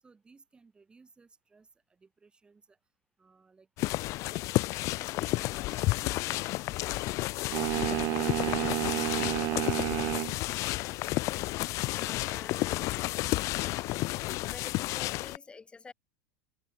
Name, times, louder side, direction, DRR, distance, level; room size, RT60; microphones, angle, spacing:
voice 1, 0.0-2.8 3.2-4.0 4.8-9.7 11.2-11.7, right 4 dB, 10° right, 7.3 m, -61 dB
sound 1, 3.8-15.4, left 20 dB, 40° left, 0.5 m, -31 dB
sound 2, 7.5-10.4, right 21 dB, 40° right, 0.3 m, -30 dB
voice 2, 11.9-13.0 14.4-15.9, left 4 dB, 10° left, 5.2 m, -49 dB
supercardioid pair, 165°, 8 cm